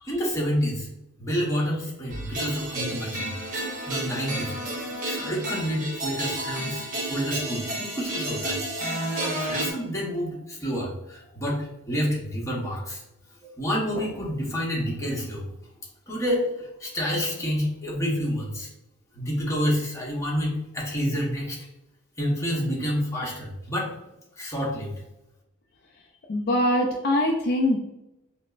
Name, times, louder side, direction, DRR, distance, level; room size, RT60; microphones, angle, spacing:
voice 1, 0.0-0.9 1.2-4.6 5.0-8.6 9.4-13.0 13.6-15.4 16.1-18.7 19.1-21.6 22.2-23.9 24.4-24.9, equal, 15° left, -4 dB, 0.9 m, -28 dB
sound 1, 2.1-9.7, right 1 dB, 40° right, 1.0 m, -31 dB
voice 2, 26.3-27.8, left 1 dB, 45° left, 0 dB, 0.4 m, -23 dB
5.0 x 2.0 x 2.4 m, 0.89 s
head